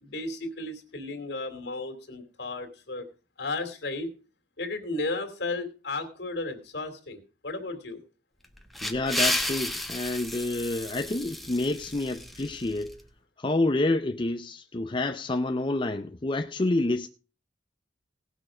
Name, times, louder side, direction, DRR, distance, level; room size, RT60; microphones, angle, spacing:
voice 1, 0.0-3.1 3.4-4.1 4.6-8.0, left 2 dB, 60° left, 2.6 m, -34 dB
sound 1, 8.4-13.0, left 1 dB, ahead, 1.1 m, -32 dB
voice 2, 8.8-13.0 13.4-17.1, left 2 dB, 25° left, 0.5 m, -28 dB
18.5 x 6.4 x 5.0 m
head